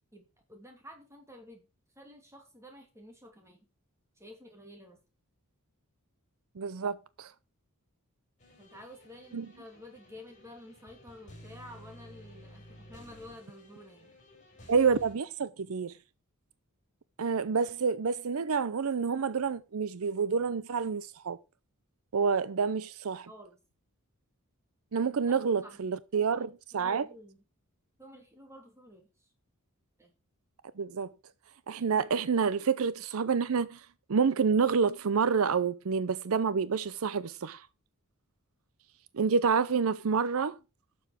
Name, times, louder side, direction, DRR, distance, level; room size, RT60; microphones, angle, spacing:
voice 1, 0.1-1.7 1.9-3.6 4.2-5.0 8.6-14.1 23.3-23.6 25.3-25.4 25.6-25.8 26.1-26.4 26.7-27.4 28.0-29.3 30.0-30.2, left 1 dB, 15° right, 2.8 m, -51 dB
voice 2, 6.6-7.3 9.3-9.5 14.7-15.9 17.2-21.4 22.1-23.3 24.9-27.1 30.8-31.1 31.7-37.7 39.1-40.6, right 5 dB, 65° right, 0.5 m, -28 dB
sound 1, 8.4-15.2, equal, 35° left, 5.8 m, -53 dB
12.0 x 7.1 x 4.9 m
head